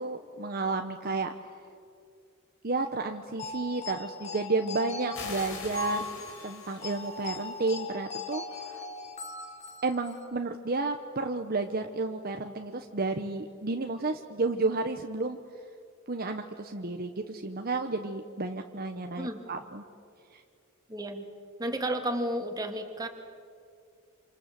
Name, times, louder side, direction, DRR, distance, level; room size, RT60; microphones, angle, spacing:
voice 1, 0.0-1.3 2.6-8.8 9.8-15.4 16.1-19.8 20.3-20.4, right 3 dB, 45° right, 5 dB, 1.1 m, -32 dB
sound 1, 3.4-10.3, left 4 dB, 30° left, 2.4 m, -39 dB
sound 2, 5.1-7.7, left 4 dB, 65° left, 4.1 m, -43 dB
voice 2, 20.9-21.3 21.6-23.1, right 1 dB, 20° right, 4 dB, 2.4 m, -32 dB
28.5 x 27.0 x 7.7 m, 2.3 s
head